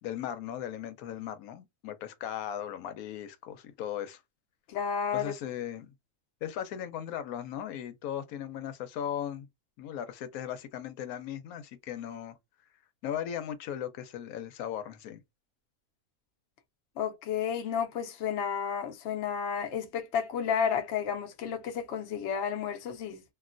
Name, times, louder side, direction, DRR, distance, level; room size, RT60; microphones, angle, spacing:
voice 1, 0.0-4.2 5.1-5.9 6.4-9.5 9.8-12.4 13.0-15.2, left 10 dB, 85° left, 1.0 m, -37 dB
voice 2, 4.7-5.3 17.0-23.2, left 7 dB, 60° left, 0.9 m, -31 dB
3.1 x 2.5 x 2.5 m
omnidirectional pair, 1.5 m